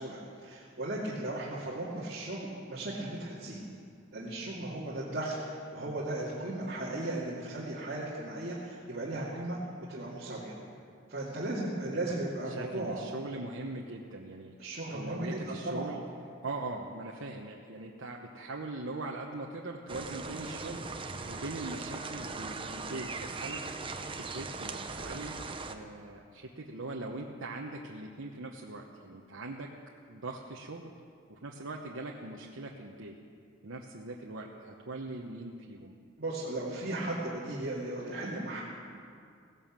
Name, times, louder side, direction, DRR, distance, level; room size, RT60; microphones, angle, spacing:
voice 1, 0.0-3.6 4.1-10.6 11.1-13.0 14.6-15.9 36.2-38.6, right 1 dB, 50° right, -6 dB, 2.2 m, -36 dB
voice 2, 11.9-12.2 12.5-14.5 14.9-16.0 16.4-23.6 24.3-29.7 30.1-30.9 31.3-33.1 33.6-35.9, right 2 dB, 85° right, 0 dB, 1.0 m, -41 dB
sound 1, 19.9-25.8, right 3 dB, 25° right, 0.8 m, -39 dB
17.0 x 11.0 x 7.5 m, 2.3 s
head